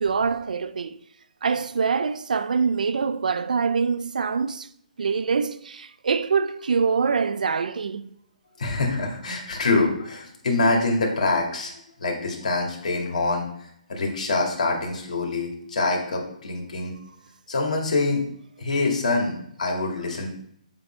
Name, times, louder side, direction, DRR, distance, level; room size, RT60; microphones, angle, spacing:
voice 1, 0.0-1.0 1.4-4.7 5.0-8.1, right 5 dB, 80° right, 0.5 m, -24 dB
voice 2, 8.6-11.7 12.0-16.9 17.5-18.2 18.6-20.3, left 3 dB, 65° left, 2.1 m, -25 dB
8.1 x 3.5 x 4.4 m
hypercardioid pair, 175°, 4 cm